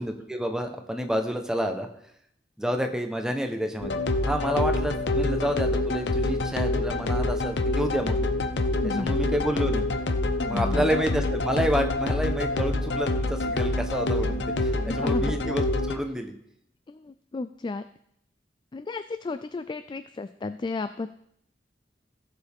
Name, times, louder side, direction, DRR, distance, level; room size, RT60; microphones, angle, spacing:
voice 1, 0.0-1.9 2.6-8.2 8.8-9.9 10.5-16.3, equal, 5° right, 4 dB, 0.9 m, -29 dB
sound 1, 3.8-16.0, left 2 dB, 85° left, 0.8 m, -26 dB
voice 2, 8.8-9.2 10.4-10.9 14.8-15.3 16.9-17.9 18.7-21.1, left 3 dB, 25° left, 12 dB, 0.3 m, -33 dB
16.5 x 7.3 x 3.6 m, 0.73 s
head